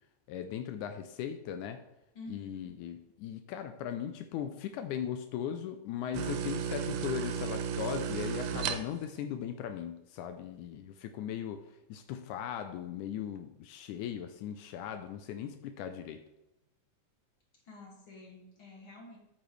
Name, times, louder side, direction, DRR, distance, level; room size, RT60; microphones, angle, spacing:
voice 1, 0.3-1.8 2.3-11.6 11.9-16.2, left 9 dB, 85° left, 7 dB, 2.1 m, -38 dB
voice 2, 2.1-2.7 17.6-19.2, left 2 dB, 45° left, -2 dB, 2.7 m, -49 dB
sound 1, 6.1-9.2, right 7 dB, 90° right, 2.2 m, -34 dB
9.1 x 8.9 x 3.3 m, 0.88 s
omnidirectional pair, 3.5 m